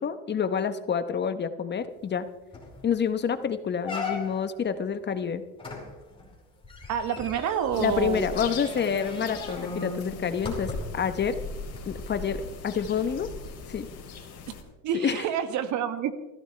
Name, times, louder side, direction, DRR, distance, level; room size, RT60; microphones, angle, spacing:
voice 1, 0.0-2.3 2.8-5.4 7.8-11.4 11.9-13.3 13.7-13.9 14.9-15.3, left 7 dB, 30° left, 10 dB, 1.0 m, -28 dB
sound 1, 2.1-2.2 2.5-2.8 3.3-3.4 3.8-4.6 5.6-11.1 11.7-11.8, left 3 dB, 15° left, 5.1 m, -37 dB
voice 2, 6.9-8.2 14.8-16.2, right 8 dB, 60° right, 10 dB, 1.6 m, -28 dB
sound 2, 7.7-14.6, left 4 dB, 45° left, 3.5 m, -40 dB
21.0 x 15.5 x 3.3 m, 1.0 s
cardioid pair, 115°, 34 cm